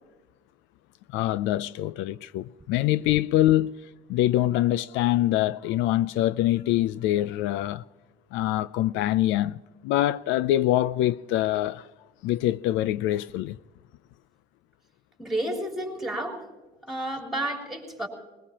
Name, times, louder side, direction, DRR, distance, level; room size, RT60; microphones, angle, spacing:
voice 1, 1.1-3.7 4.1-7.8 8.3-11.9 12.2-13.6, left 14 dB, 75° left, 0.4 m, -24 dB
voice 2, 15.2-16.4 16.8-18.1, right 1 dB, ahead, 3.5 m, -31 dB
21.0 x 20.0 x 2.9 m
cardioid pair, 135°, 20 cm